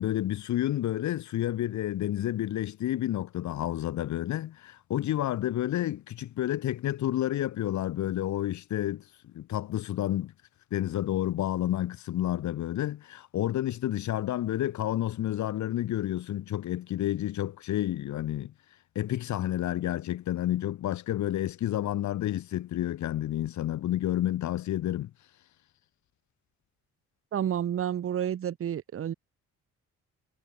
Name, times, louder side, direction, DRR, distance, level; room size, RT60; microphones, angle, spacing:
voice 1, 0.0-10.3 10.7-18.5 18.9-25.1, left 13 dB, 70° left, 1.3 m, -30 dB
voice 2, 27.3-29.1, right 9 dB, 45° right, 0.9 m, -30 dB
cardioid pair, 90°, 30 cm